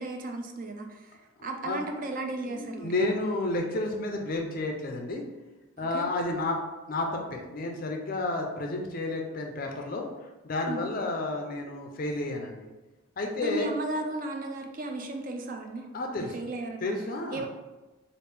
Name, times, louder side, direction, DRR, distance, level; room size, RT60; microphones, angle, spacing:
voice 1, 0.0-3.0 5.8-6.0 10.7-10.9 13.4-15.9 16.2-16.9 17.3-17.5, right 2 dB, 40° right, 4 dB, 0.3 m, -35 dB
voice 2, 2.5-5.2 5.8-6.6 6.9-10.1 10.4-12.7 13.2-13.7 15.9-16.3 16.8-17.5, left 2 dB, 40° left, 2 dB, 0.4 m, -31 dB
3.3 x 2.5 x 3.3 m, 1.2 s
head